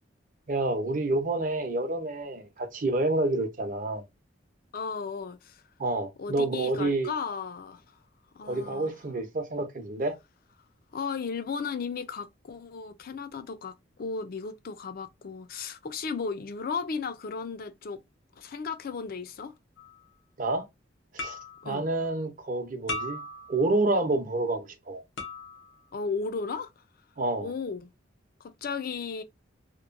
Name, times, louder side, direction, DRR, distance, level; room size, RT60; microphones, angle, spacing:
voice 1, 0.5-4.0 5.8-7.1 8.4-10.1 20.4-20.7 21.1-21.4 21.6-23.2 23.5-25.0 27.2-27.5, right 2 dB, 45° right, 0.7 m, -28 dB
voice 2, 4.7-5.6 6.2-7.8 8.3-8.9 10.9-18.0 18.4-19.5 21.6-22.1 25.9-26.7 27.4-27.9 28.4-29.2, left 5 dB, 55° left, 0.4 m, -35 dB
sound 1, 19.8-20.0 21.2-21.7 22.9-23.8 25.2-25.8, left 2 dB, 90° left, 0.8 m, -37 dB
2.9 x 2.2 x 2.5 m
head